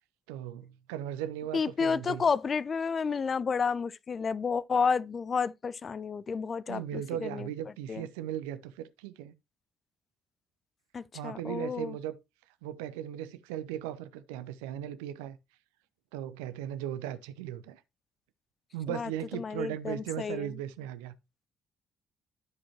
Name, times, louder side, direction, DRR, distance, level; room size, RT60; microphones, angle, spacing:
voice 1, 0.3-2.2 6.7-9.3 11.1-12.1 12.6-15.4 16.1-17.8 18.7-21.2, right 11 dB, 70° right, 0.6 m, -37 dB
voice 2, 1.5-7.5 7.9-8.1 10.9-12.0 18.9-20.5, left 5 dB, 40° left, 0.4 m, -31 dB
13.5 x 5.0 x 2.9 m
figure-of-eight pair, 50°, 0 cm